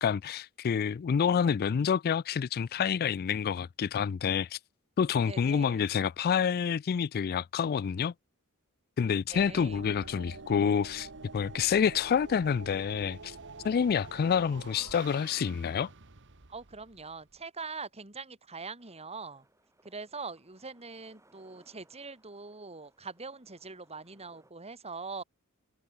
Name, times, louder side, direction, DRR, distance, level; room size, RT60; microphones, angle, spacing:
voice 1, 0.0-4.6 5.0-8.1 9.0-11.1 11.3-13.4 13.6-15.9, left 7 dB, 45° left, 0.3 m, -28 dB
voice 2, 5.3-5.9 9.3-9.8 16.5-19.5 19.8-25.2, right 4 dB, 30° right, 3.1 m, -43 dB
sound 1, 9.3-17.4, right 3 dB, 55° right, 1.7 m, -48 dB
sound 2, 18.8-24.5, right 2 dB, 15° right, 5.2 m, -66 dB
head